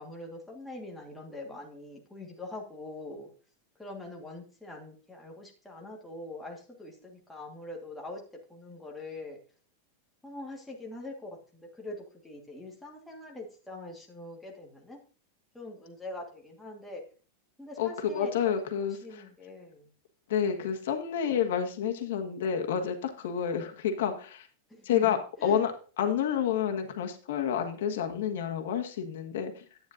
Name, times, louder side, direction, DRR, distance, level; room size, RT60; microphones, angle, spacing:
voice 1, 0.0-3.3 3.7-8.2 8.5-9.4 10.2-15.0 15.5-17.0 17.6-18.5 18.8-19.9 20.5-20.7 24.7-25.6, left 2 dB, 5° left, -1 dB, 1.4 m, -43 dB
voice 2, 18.1-19.2 20.3-24.5 24.8-25.7 26.0-29.6, left 8 dB, 75° left, 4 dB, 1.4 m, -29 dB
10.5 x 9.0 x 2.5 m, 0.38 s
supercardioid pair, 165°, 0 cm